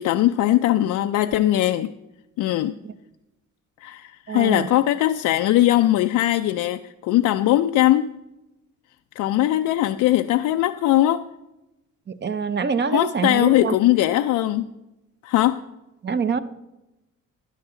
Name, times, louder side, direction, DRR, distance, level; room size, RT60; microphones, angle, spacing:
voice 1, 0.0-1.9 2.4-2.8 3.8-8.1 9.2-11.2 12.9-14.7 15.2-15.6, left 14 dB, 85° left, 0.5 m, -20 dB
voice 2, 4.3-4.7 12.1-13.8 16.0-16.4, right 6 dB, 35° right, 0.7 m, -25 dB
12.5 x 9.7 x 3.8 m
cardioid pair, 90°, 30 cm